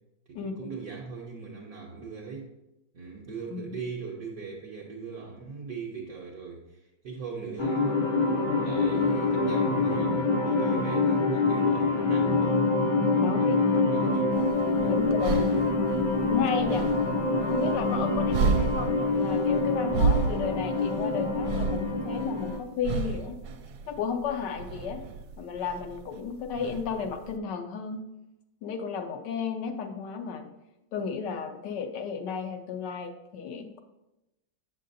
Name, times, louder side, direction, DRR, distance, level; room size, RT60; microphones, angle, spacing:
voice 1, 0.3-2.5 2.9-8.0 8.6-12.7 13.2-14.4 14.8-15.0, right 5 dB, 60° right, -2 dB, 1.1 m, -40 dB
sound 1, 7.6-22.6, left 3 dB, 50° left, 0.5 m, -25 dB
voice 2, 13.2-13.6 14.9-15.5 16.3-16.9 17.4-23.4 23.9-25.0 25.4-28.0 28.6-30.5 30.9-33.8, left 6 dB, 75° left, 6 dB, 1.2 m, -33 dB
sound 2, 14.3-27.4, right 5 dB, 80° right, 1.2 m, -33 dB
7.4 x 6.6 x 2.6 m, 0.94 s
omnidirectional pair, 2.1 m